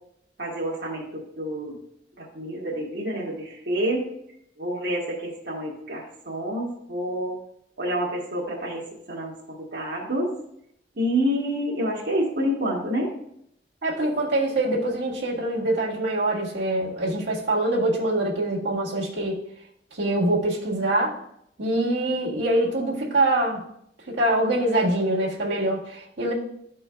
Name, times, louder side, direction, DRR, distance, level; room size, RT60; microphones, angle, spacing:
voice 1, 0.4-1.8 2.2-4.1 4.6-7.4 7.8-10.3 11.0-13.1, equal, 65° right, -5 dB, 1.5 m, -28 dB
voice 2, 13.8-19.4 20.0-21.1 21.6-23.6 24.1-26.3, right 1 dB, 85° right, -4 dB, 1.8 m, -24 dB
12.5 x 4.4 x 2.3 m, 0.73 s
head